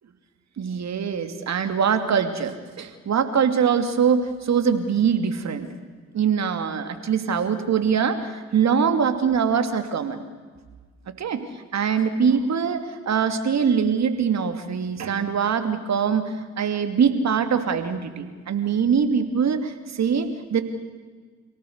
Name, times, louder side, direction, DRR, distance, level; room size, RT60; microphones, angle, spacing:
voice 1, 0.6-5.7 6.1-10.2 11.1-11.4 11.7-20.6, right 6 dB, 55° right, 8 dB, 2.7 m, -23 dB
28.0 x 17.5 x 8.1 m, 1.5 s
hypercardioid pair, 50°, 33 cm